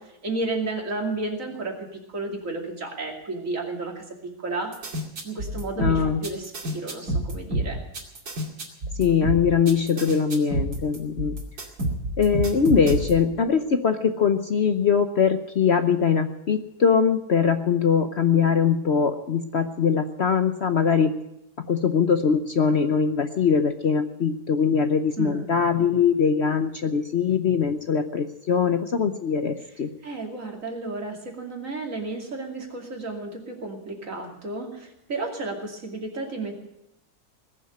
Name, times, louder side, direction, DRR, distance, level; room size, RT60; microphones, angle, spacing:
voice 1, 0.0-4.7 5.2-7.8 25.2-25.5 30.0-36.6, right 3 dB, 55° right, 1 dB, 3.0 m, -32 dB
sound 1, 4.7-13.3, right 1 dB, 75° right, 3.1 m, -28 dB
voice 2, 5.8-6.2 9.0-11.4 12.2-21.1 21.7-29.9, left 6 dB, 50° left, 8 dB, 0.9 m, -22 dB
19.5 x 7.4 x 9.7 m, 0.84 s
omnidirectional pair, 1.7 m